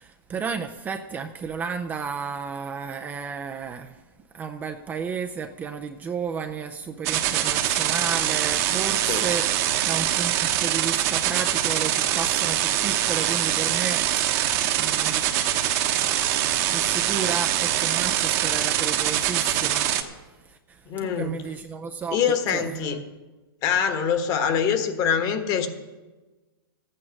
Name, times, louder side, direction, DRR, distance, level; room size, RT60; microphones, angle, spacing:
voice 1, 0.0-4.0 4.3-15.3 16.6-19.9 20.5-22.2 22.5-23.0, right 6 dB, 15° right, 5 dB, 0.5 m, -33 dB
sound 1, 7.0-20.0, right 12 dB, 40° right, 1.1 m, -24 dB
voice 2, 20.9-21.3 22.1-23.0 23.6-25.7, left 7 dB, 30° left, 8 dB, 1.3 m, -24 dB
13.5 x 8.8 x 6.4 m, 1.2 s
hypercardioid pair, 140°, 13 cm